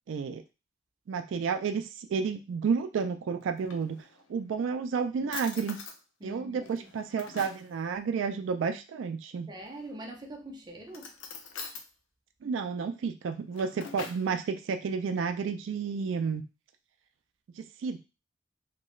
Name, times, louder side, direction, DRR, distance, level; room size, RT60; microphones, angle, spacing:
voice 1, 0.1-0.4 1.1-4.0 4.3-5.8 6.2-9.5 12.4-16.4 17.6-18.0, right 5 dB, 80° right, 8 dB, 0.3 m, -31 dB
Drawer open or close, 3.4-4.4 4.9-5.0 5.3-6.0 6.6-7.7 9.6-10.1 10.9-11.9 13.3-14.3, left 5 dB, 90° left, 0.5 m, -44 dB
voice 2, 6.2-6.9 9.5-11.1, right 1 dB, 20° right, 1 dB, 0.5 m, -44 dB
2.9 x 2.3 x 3.0 m, 0.29 s
head